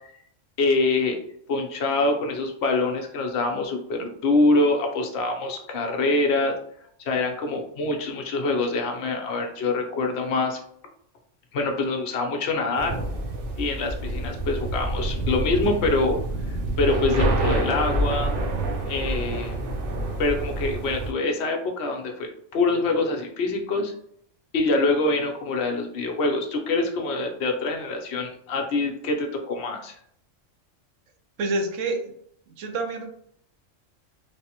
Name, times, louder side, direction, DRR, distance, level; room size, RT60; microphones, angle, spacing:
voice 1, 0.6-1.2 1.5-6.5 7.0-10.6 11.5-13.0 13.6-16.2 16.5-18.3 18.8-19.6 20.2-23.9 24.5-30.0, left 2 dB, 65° left, 3 dB, 0.8 m, -25 dB
sound 1, 12.8-21.1, right 2 dB, 55° right, 0.7 m, -27 dB
voice 2, 31.4-32.1 32.6-33.1, right 2 dB, 80° right, 4 dB, 1.0 m, -27 dB
3.2 x 2.0 x 2.8 m, 0.66 s
omnidirectional pair, 1.3 m